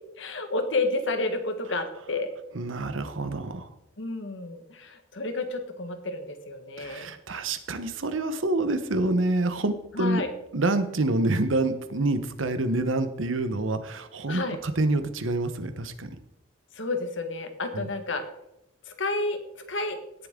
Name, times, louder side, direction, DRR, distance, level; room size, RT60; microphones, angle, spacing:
voice 1, 0.2-2.3 4.0-7.1 9.9-10.3 14.3-14.6 16.7-18.2 19.0-19.4 19.7-20.0, left 2 dB, 70° left, 7 dB, 1.5 m, -30 dB
voice 2, 2.5-3.7 6.8-10.2 10.5-16.1 17.7-17.9, right 2 dB, 85° right, 10 dB, 1.0 m, -27 dB
17.5 x 7.0 x 3.7 m, 0.83 s
head